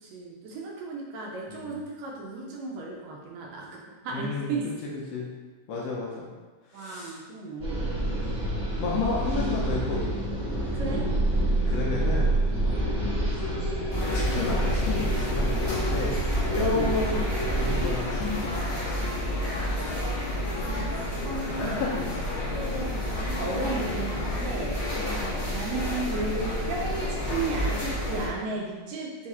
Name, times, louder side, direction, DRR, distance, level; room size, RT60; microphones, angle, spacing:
voice 1, 0.0-4.6 6.7-7.9 10.7-11.1 16.7-16.9 20.6-22.0 22.5-24.8 25.5-29.3, right 3 dB, 80° right, -2 dB, 1.7 m, -34 dB
voice 2, 4.1-4.5 4.8-5.3 5.7-6.3 6.7-7.2 8.1-8.3 8.8-10.1 11.7-12.4 12.6-13.4 14.1-16.2 16.5-17.2 17.5-18.6 19.0-19.1 21.5-22.1 23.6-23.8 25.0-25.3, left 3 dB, 75° left, -4 dB, 1.5 m, -32 dB
sound 1, 7.6-17.9, right 1 dB, 45° right, 0.8 m, -27 dB
sound 2, 13.9-28.3, left 1 dB, 30° left, 1.0 m, -30 dB
4.7 x 2.4 x 4.1 m, 1.3 s
omnidirectional pair, 3.3 m